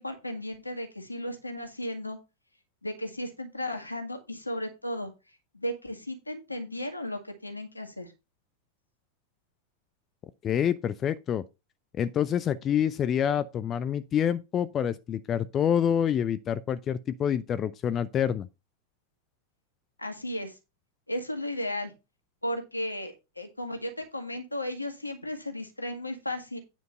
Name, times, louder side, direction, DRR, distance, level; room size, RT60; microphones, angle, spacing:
voice 1, 0.0-2.2 2.8-5.1 5.5-8.1 20.0-20.6 21.1-21.9 22.4-26.6, left 1 dB, 85° left, 1.9 m, -35 dB
voice 2, 10.4-11.4 11.9-18.5, left 9 dB, 30° left, 0.5 m, -27 dB
9.5 x 4.5 x 5.6 m
figure-of-eight pair, 90°, 0 cm